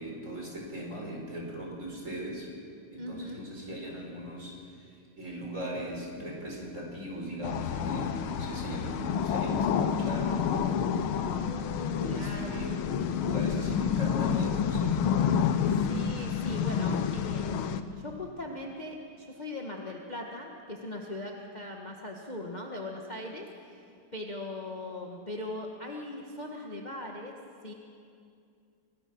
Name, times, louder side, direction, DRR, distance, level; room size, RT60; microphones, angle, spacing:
voice 1, 0.0-2.5 2.9-4.9 5.2-11.4 12.0-12.9 13.2-15.0, right 1 dB, 35° right, -1 dB, 5.0 m, -39 dB
voice 2, 2.9-3.4 11.4-12.5 15.7-27.3 27.6-27.7, left 1 dB, 25° left, 0 dB, 1.5 m, -40 dB
sound 1, 7.4-17.8, left 7 dB, 85° left, 1.8 m, -29 dB
27.0 x 19.5 x 6.3 m, 2.4 s
omnidirectional pair, 2.3 m